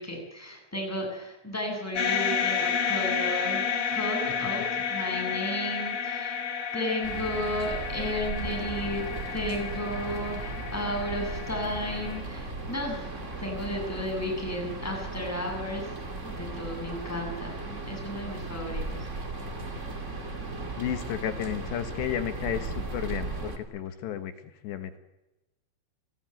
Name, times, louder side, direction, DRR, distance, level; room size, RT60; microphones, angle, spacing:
voice 1, 0.0-6.4 6.7-13.1 13.4-15.9 16.2-19.1, left 1 dB, 5° left, 1 dB, 7.3 m, -33 dB
sound 1, 2.0-12.2, left 7 dB, 50° left, 5.1 m, -31 dB
sound 2, 7.0-23.6, right 3 dB, 70° right, 0.7 m, -36 dB
voice 2, 20.8-24.3 24.6-25.0, left 10 dB, 70° left, 8 dB, 3.3 m, -32 dB
28.5 x 17.5 x 9.2 m, 1.0 s
omnidirectional pair, 5.9 m